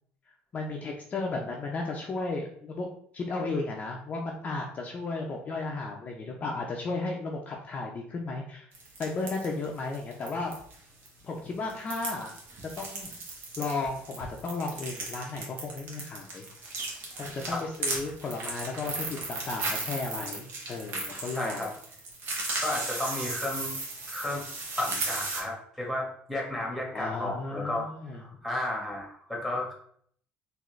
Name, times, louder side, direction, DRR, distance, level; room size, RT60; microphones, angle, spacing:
voice 1, 0.5-2.9 3.1-8.7 9.0-10.5 11.2-12.3 12.8-13.2 13.6-16.5 17.1-21.6 26.9-28.2, left 3 dB, 35° left, 0 dB, 0.6 m, -34 dB
sound 1, 8.7-10.8 11.0-11.1 11.7-25.4, right 2 dB, 55° right, 1.2 m, -36 dB
voice 2, 21.3-21.7 22.6-23.7 24.1-24.4 24.8-27.9 28.1-29.7, left 1 dB, ahead, -3 dB, 1.4 m, -33 dB
3.8 x 2.7 x 3.2 m, 0.62 s
cardioid pair, 115°, 4 cm